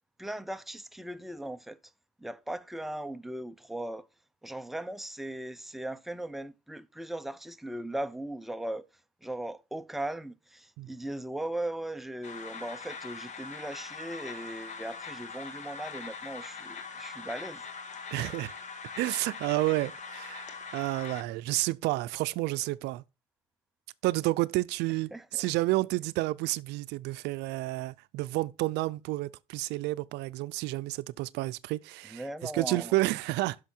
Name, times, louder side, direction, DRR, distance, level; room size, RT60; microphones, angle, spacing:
voice 1, 0.2-1.8 2.2-4.1 4.4-8.9 9.2-17.7 25.1-25.5 32.1-32.9, right 1 dB, ahead, 0.5 m, -38 dB
sound 1, 12.2-21.2, left 5 dB, 45° left, 1.7 m, -42 dB
voice 2, 18.1-18.5 19.0-23.0 24.0-33.6, right 19 dB, 85° right, 0.4 m, -30 dB
10.5 x 6.3 x 4.4 m
cardioid pair, 110°, 17 cm